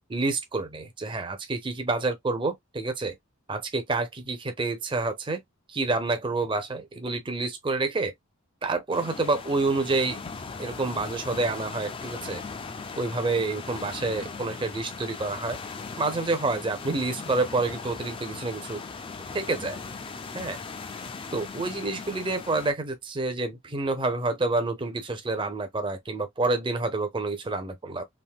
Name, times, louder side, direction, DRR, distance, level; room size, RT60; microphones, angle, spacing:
voice 1, 0.1-3.2 3.5-5.4 5.7-8.1 8.6-10.2 10.6-12.4 13.0-15.6 16.0-18.8 19.3-19.8 20.3-20.6 21.3-28.0, right 3 dB, 25° right, 0.6 m, -28 dB
sound 1, 8.9-22.7, left 4 dB, 25° left, 0.4 m, -39 dB
3.5 x 2.6 x 2.3 m
head